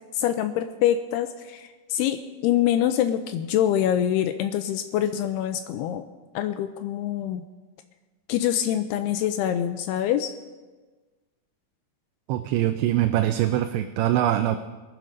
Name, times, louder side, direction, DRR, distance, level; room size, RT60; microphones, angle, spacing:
voice 1, 0.1-6.1 6.3-7.4 8.3-10.3, left 11 dB, 85° left, 8 dB, 2.3 m, -25 dB
voice 2, 12.3-14.6, right 12 dB, 90° right, 8 dB, 2.9 m, -23 dB
23.0 x 7.8 x 5.3 m, 1.3 s
omnidirectional pair, 5.1 m